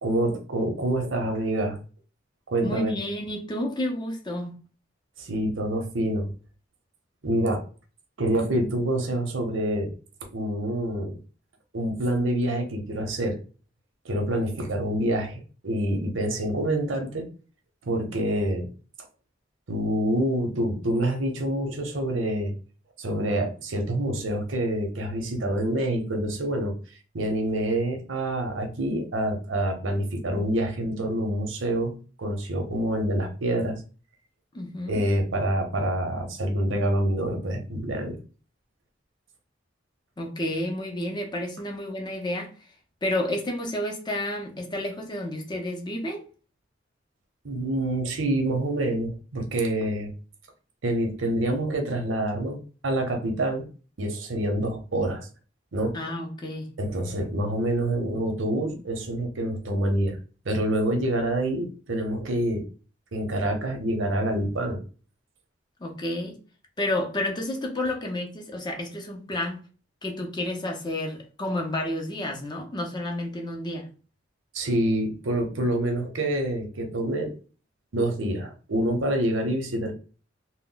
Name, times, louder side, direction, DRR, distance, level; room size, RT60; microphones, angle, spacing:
voice 1, 0.0-1.8 2.5-2.9 5.2-6.3 7.2-7.6 8.2-9.9 10.3-11.2 11.7-13.4 14.0-17.3 17.8-18.7 19.7-22.5 23.0-26.7 27.1-31.9 32.2-33.8 34.9-38.2 47.4-50.1 50.8-53.7 54.0-55.3 55.7-56.0 56.8-60.2 60.4-62.7 63.1-64.8 74.5-77.3 77.9-79.9, right 1 dB, 85° right, 0.7 m, -26 dB
voice 2, 2.6-4.5 34.5-35.0 40.2-42.5 43.0-46.3 55.9-56.7 65.8-66.4 66.8-69.6 70.0-73.9, left 1 dB, 25° left, 0.5 m, -30 dB
2.2 x 2.1 x 3.7 m
head